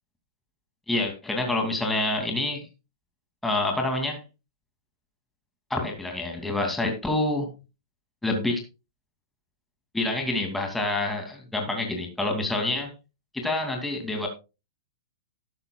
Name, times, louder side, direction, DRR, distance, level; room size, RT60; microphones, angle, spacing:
voice 1, 0.9-2.7 3.4-4.2 5.7-7.5 8.2-8.6 9.9-12.9 13.3-14.3, left 2 dB, 5° left, 2 dB, 2.4 m, -27 dB
12.5 x 11.0 x 2.3 m, 0.28 s
hypercardioid pair, 150°, 2 cm